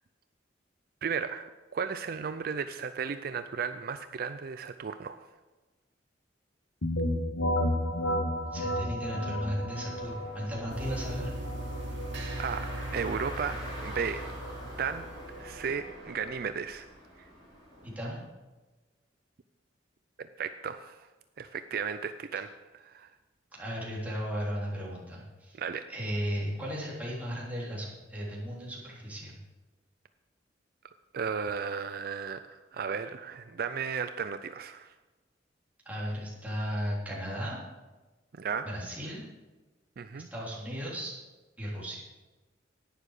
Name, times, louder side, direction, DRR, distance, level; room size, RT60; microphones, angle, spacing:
voice 1, 1.0-5.2 12.4-12.7 12.9-14.3 14.8-15.1 15.4-16.9 20.2-21.1 21.4-23.1 25.6-25.9 31.1-34.9 38.3-38.7 40.0-40.3, right 6 dB, 55° right, 10 dB, 0.4 m, -35 dB
sound 1, 6.8-16.4, equal, 90° left, 1.3 m, -34 dB
voice 2, 8.5-11.3 17.8-18.2 23.5-25.6 25.9-29.4 35.8-37.6 38.6-39.2 40.1-41.1 41.6-42.0, equal, 10° right, -6 dB, 3.4 m, -35 dB
Car, 9.6-18.2, equal, 25° left, 4.1 m, -46 dB
sound 2, 10.7-15.8, right 1 dB, 75° right, 2.7 m, -39 dB
11.5 x 9.7 x 4.9 m, 1.2 s
head